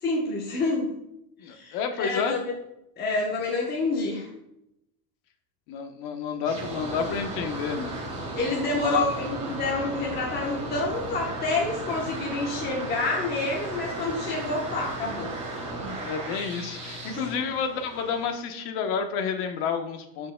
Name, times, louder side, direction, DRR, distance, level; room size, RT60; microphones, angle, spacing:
voice 1, 0.0-0.9 1.4-2.5 3.0-4.3 8.4-15.3 15.8-16.0 17.1-17.3, left 3 dB, 20° left, -3 dB, 1.0 m, -28 dB
voice 2, 1.4-2.4 5.7-7.9 8.8-9.1 16.0-20.3, left 6 dB, 50° left, 6 dB, 1.1 m, -30 dB
sound 1, 6.4-18.3, right 2 dB, 15° right, 1.9 m, -35 dB
12.0 x 5.1 x 2.2 m, 0.81 s
supercardioid pair, 150°, 50 cm